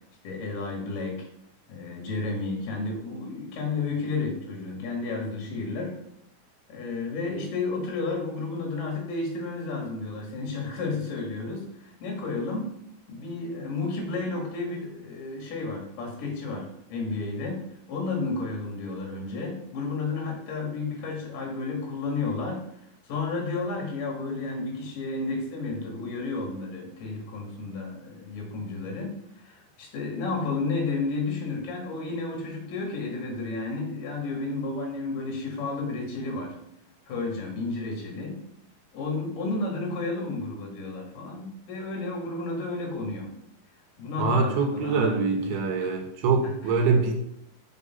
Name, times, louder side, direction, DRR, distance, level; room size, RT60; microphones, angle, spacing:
voice 1, 0.2-1.3 1.7-6.0 6.7-12.7 13.1-22.6 23.1-36.6 37.1-38.4 38.9-43.3 44.0-45.9, left 3 dB, 60° left, 1 dB, 3.6 m, -32 dB
voice 2, 44.2-47.1, right 4 dB, 80° right, 3 dB, 3.2 m, -24 dB
6.9 x 5.9 x 5.8 m, 0.76 s
omnidirectional pair, 4.4 m